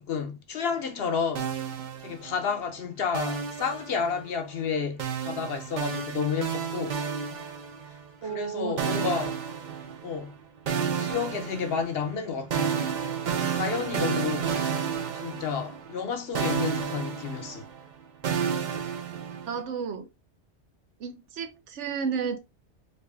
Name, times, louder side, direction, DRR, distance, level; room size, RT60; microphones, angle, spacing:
voice 1, 0.0-1.5 2.0-7.0 8.2-9.4 10.0-10.3 11.0-12.7 13.5-14.6 15.1-17.6, left 6 dB, 60° left, 0.8 m, -31 dB
sound 1, 1.3-2.6 3.1-4.4 5.0-8.1 8.8-10.3 10.7-16.1 16.3-19.6, right 7 dB, 55° right, 0.6 m, -31 dB
voice 2, 8.2-9.2 19.5-20.1 21.0-22.4, right 6 dB, 75° right, 1.0 m, -32 dB
4.1 x 2.2 x 3.3 m
omnidirectional pair, 1.2 m